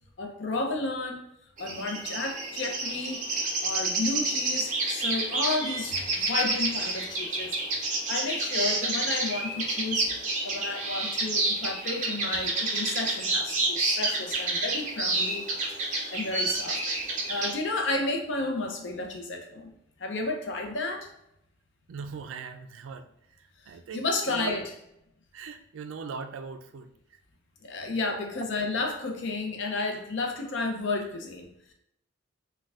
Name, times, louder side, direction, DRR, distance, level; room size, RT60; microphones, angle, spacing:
voice 1, 0.2-1.2 1.6-7.6 7.8-10.1 10.4-15.5 15.9-16.8 17.3-19.7 20.0-21.1 23.9-24.6 27.6-31.7, left 3 dB, 65° left, 3 dB, 0.6 m, -32 dB
sound 1, 1.6-17.5, right 2 dB, 40° right, 0.6 m, -29 dB
voice 2, 21.9-23.1 23.7-24.6 25.3-26.9, right 5 dB, 80° right, 8 dB, 0.3 m, -39 dB
4.1 x 2.2 x 2.4 m, 0.80 s
head